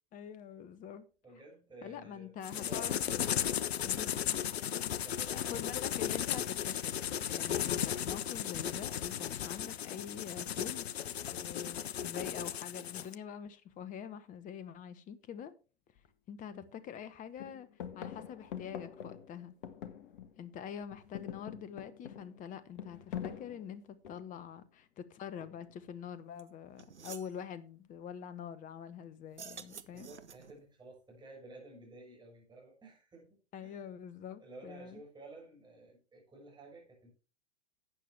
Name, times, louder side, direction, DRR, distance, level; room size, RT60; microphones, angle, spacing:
voice 1, 0.1-1.1 1.8-3.4 3.8-5.0 5.3-6.9 7.3-10.9 11.3-15.5 16.3-17.7 17.9-19.5 20.4-30.1 33.5-35.0, left 8 dB, 25° left, 1.0 m, -45 dB
voice 2, 1.2-3.0 5.0-5.7 29.9-33.8 34.4-37.1, right 2 dB, 15° right, 6.0 m, -53 dB
sound 1, 2.4-13.2, left 9 dB, 65° left, 0.7 m, -35 dB
sound 2, 16.0-16.1 16.5-17.1 17.4-20.5 20.8-24.4 25.4-25.9, left 9 dB, 50° left, 1.4 m, -45 dB
sound 3, 26.4-26.5 26.8-27.3 29.3-30.6, right 6 dB, 85° right, 0.9 m, -49 dB
12.0 x 8.7 x 3.4 m
figure-of-eight pair, 100°, 34 cm